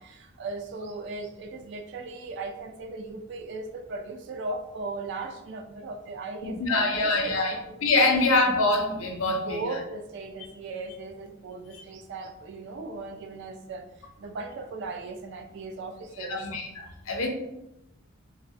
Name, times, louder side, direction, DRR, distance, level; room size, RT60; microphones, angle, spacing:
voice 1, 0.0-7.7 8.0-8.2 9.3-13.8 14.2-16.5, right 3 dB, 60° right, 6 dB, 0.3 m, -37 dB
voice 2, 6.4-7.6 7.8-9.8 16.3-17.3, left 2 dB, 90° left, 2 dB, 0.5 m, -24 dB
2.3 x 2.1 x 2.6 m, 0.87 s
head